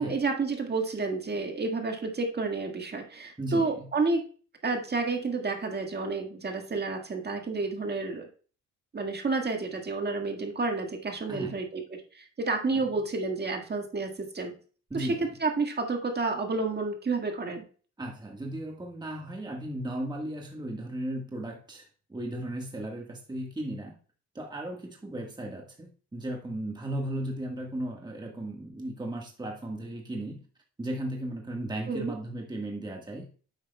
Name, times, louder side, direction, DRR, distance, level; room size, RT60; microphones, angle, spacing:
voice 1, 0.0-4.2 4.6-8.3 8.9-14.5 14.9-17.7 31.9-32.1, right 3 dB, 35° right, 1.7 m, -30 dB
voice 2, 3.4-3.9 11.3-11.5 12.7-12.8 14.9-15.3 18.0-24.0 24.3-30.4 30.8-33.3, right 1 dB, 15° right, 1.5 m, -36 dB
9.5 x 8.0 x 2.3 m
cardioid pair, 90°, 30 cm